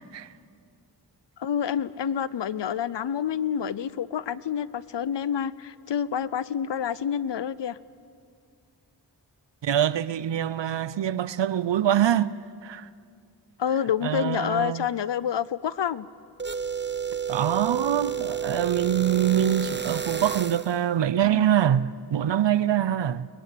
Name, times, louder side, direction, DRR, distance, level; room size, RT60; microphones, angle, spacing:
voice 1, 1.4-7.8 13.6-16.1, left 8 dB, 80° left, 0.7 m, -28 dB
voice 2, 9.6-12.3 12.6-12.9 14.0-14.9 17.3-23.3, right 10 dB, 80° right, 0.7 m, -24 dB
sound 1, 16.4-20.8, right 7 dB, 25° right, 1.1 m, -31 dB
22.5 x 21.5 x 8.5 m
cardioid pair, 40°, 42 cm